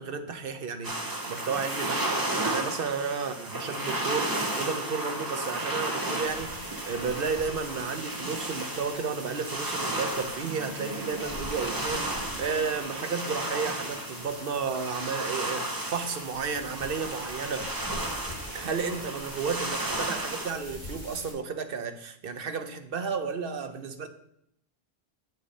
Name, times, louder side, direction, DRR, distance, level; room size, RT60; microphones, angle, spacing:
voice 1, 0.0-2.1 2.4-17.8 18.5-24.1, right 5 dB, 60° right, 8 dB, 1.0 m, -33 dB
sound 1, 0.8-20.5, right 1 dB, 20° right, 0.9 m, -33 dB
sound 2, 6.2-21.3, equal, 5° left, 3.8 m, -44 dB
sound 3, 10.4-17.3, right 4 dB, 85° right, 2.5 m, -47 dB
8.2 x 6.5 x 4.2 m, 0.74 s
omnidirectional pair, 1.1 m